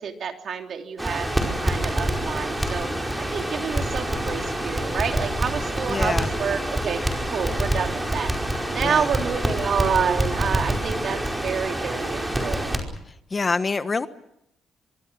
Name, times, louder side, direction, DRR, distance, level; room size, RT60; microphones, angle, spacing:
voice 1, 0.0-8.3 8.7-12.8, right 7 dB, 60° right, 4 dB, 3.2 m, -28 dB
Crackle, 1.0-12.8, right 1 dB, 10° right, 5.1 m, -26 dB
voice 2, 5.9-6.3 8.8-9.1 13.3-14.1, left 4 dB, 30° left, 12 dB, 1.2 m, -25 dB
24.5 x 23.5 x 6.3 m, 0.80 s
cardioid pair, 90°, 0 cm